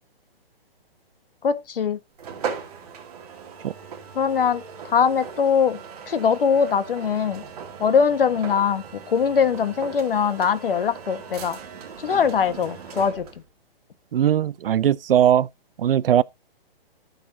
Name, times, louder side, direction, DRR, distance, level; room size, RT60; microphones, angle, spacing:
voice 1, 1.4-2.0 4.1-5.8 6.1-7.4 7.8-11.6 12.0-13.3, left 6 dB, 65° left, 1.5 m, -22 dB
sound 1, 2.2-13.5, right 7 dB, 40° right, 2.6 m, -38 dB
voice 2, 14.1-15.5 15.8-16.2, right 10 dB, 65° right, 0.5 m, -19 dB
14.0 x 6.6 x 2.7 m
hypercardioid pair, 170°, 30 cm